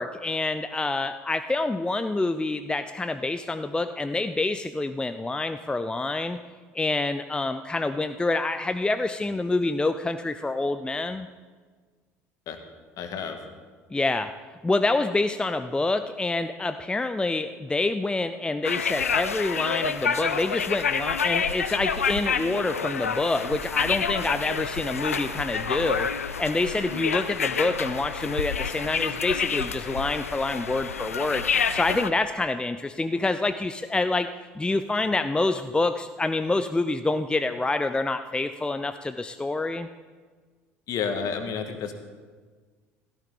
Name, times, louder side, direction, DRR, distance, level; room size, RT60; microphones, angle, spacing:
voice 1, 0.0-6.4 6.7-11.3 13.9-14.3 14.6-26.1 26.4-31.4 31.7-34.3 34.5-39.9, left 2 dB, 10° left, 9 dB, 0.6 m, -27 dB
voice 2, 13.0-13.4 40.9-41.9, left 6 dB, 50° left, 6 dB, 1.8 m, -30 dB
sound 1, 18.6-32.1, left 6 dB, 85° left, 0.5 m, -28 dB
16.5 x 13.5 x 3.9 m, 1.5 s
figure-of-eight pair, 60°, 8 cm